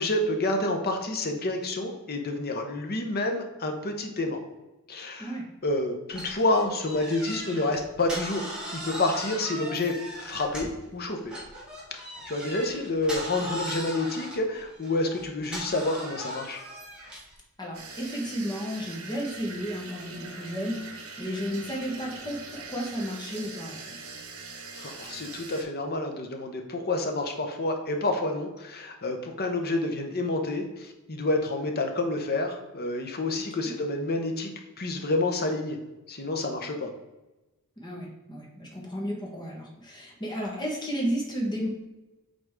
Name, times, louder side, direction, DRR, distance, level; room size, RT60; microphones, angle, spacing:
voice 1, 0.0-4.4 4.9-9.9 10.2-11.3 11.9-16.6 24.7-34.5 34.8-35.8 36.1-36.9, left 2 dB, 45° left, 4 dB, 0.9 m, -29 dB
sound 1, 6.1-10.9 11.3-17.3, equal, 5° right, 1.9 m, -38 dB
voice 2, 17.6-24.0 33.6-33.7 37.8-41.7, equal, 20° left, -1 dB, 1.4 m, -33 dB
sound 2, 17.7-25.6, right 4 dB, 70° right, 1.4 m, -42 dB
7.9 x 4.0 x 3.7 m, 1.0 s
head